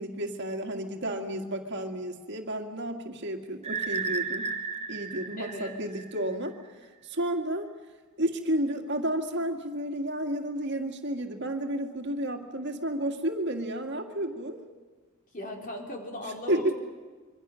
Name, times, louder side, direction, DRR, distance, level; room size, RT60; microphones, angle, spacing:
voice 1, 0.0-4.5 4.9-6.5 7.0-7.7 8.2-14.6 16.5-16.7, right 1 dB, 55° right, 5 dB, 2.0 m, -31 dB
sound 1, 3.6-6.5, right 4 dB, 30° right, 1.3 m, -34 dB
voice 2, 5.4-5.7 15.3-16.7, left 1 dB, 40° left, 2 dB, 3.8 m, -37 dB
26.5 x 24.0 x 6.4 m, 1.4 s
head